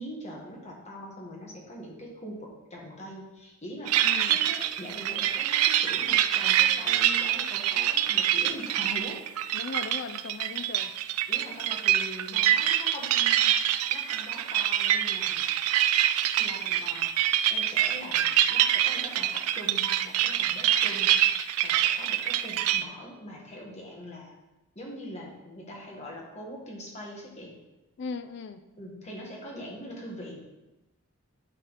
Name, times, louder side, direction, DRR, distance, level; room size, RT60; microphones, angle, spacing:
voice 1, 0.0-4.0 4.3-9.2 11.3-13.6 13.9-15.5 16.4-24.3 24.7-27.6 28.8-30.4, equal, 30° left, -2 dB, 1.7 m, -42 dB
sound 1, 3.9-22.8, right 11 dB, 75° right, 0.4 m, -25 dB
voice 2, 4.0-4.4 9.5-10.9 28.0-28.6, left 4 dB, 50° left, 10 dB, 0.4 m, -38 dB
11.0 x 4.1 x 4.1 m, 1.0 s
head